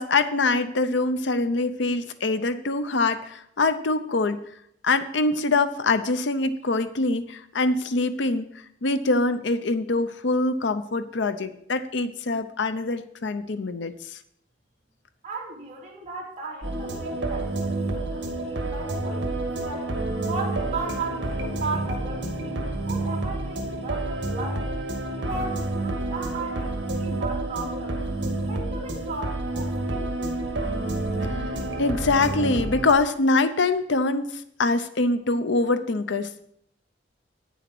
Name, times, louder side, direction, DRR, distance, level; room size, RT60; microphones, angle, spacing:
voice 1, 0.0-4.4 4.8-8.5 8.8-14.2 31.3-31.4 31.8-36.4, left 3 dB, 70° left, 11 dB, 0.7 m, -24 dB
voice 2, 15.2-19.9 20.3-24.7 25.2-28.0 28.4-30.1, right 3 dB, 40° right, -4 dB, 3.3 m, -36 dB
sound 1, 16.6-32.9, right 2 dB, 70° right, 1.9 m, -29 dB
9.4 x 7.1 x 6.1 m, 0.70 s
head